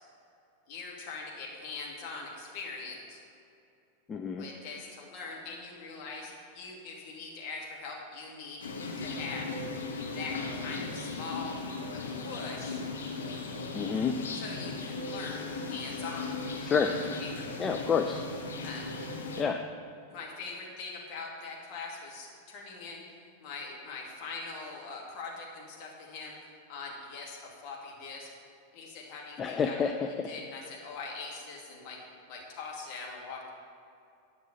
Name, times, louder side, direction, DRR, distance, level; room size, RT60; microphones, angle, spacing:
voice 1, 0.7-3.2 4.4-8.6 9.0-9.6 10.1-11.6 11.9-12.8 14.3-16.4 16.8-17.5 18.6-18.9 20.1-26.4 26.7-28.3 28.7-29.8 30.3-32.0 32.3-33.5, left 4 dB, 45° left, -2 dB, 2.3 m, -42 dB
voice 2, 4.1-4.4 13.7-14.2 16.6-16.9 17.6-18.2 19.4-19.6 29.4-30.3, left 6 dB, 20° left, 5 dB, 0.5 m, -29 dB
sound 1, 8.6-19.4, left 3 dB, 70° left, 1.2 m, -37 dB
10.5 x 6.1 x 7.0 m, 2.6 s
figure-of-eight pair, 90°, 0 cm